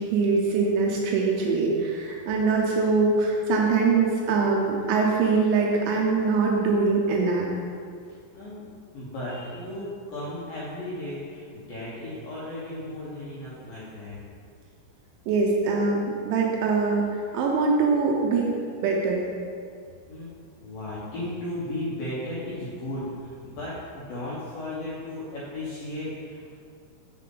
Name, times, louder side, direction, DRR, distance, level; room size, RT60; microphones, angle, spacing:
voice 1, 0.0-7.5 15.3-18.6 18.8-19.3, right 4 dB, 80° right, -1 dB, 2.9 m, -23 dB
voice 2, 8.3-8.7 8.9-14.2 20.1-20.3 20.6-26.6, left 1 dB, 75° left, -9 dB, 2.1 m, -35 dB
7.5 x 7.4 x 3.9 m, 2.2 s
omnidirectional pair, 5.9 m